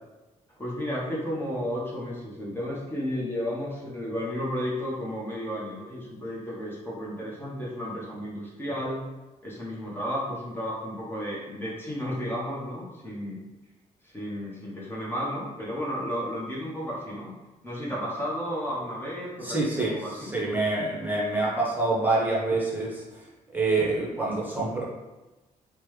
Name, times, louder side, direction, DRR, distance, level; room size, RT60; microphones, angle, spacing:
voice 1, 0.6-9.0 9.4-13.4 14.0-17.3 17.6-20.3, equal, 15° left, -6 dB, 0.8 m, -33 dB
voice 2, 19.4-23.0 23.5-24.8, right 2 dB, 15° right, -6 dB, 0.9 m, -26 dB
3.2 x 2.1 x 3.2 m, 1.1 s
cardioid pair, 80°, 14 cm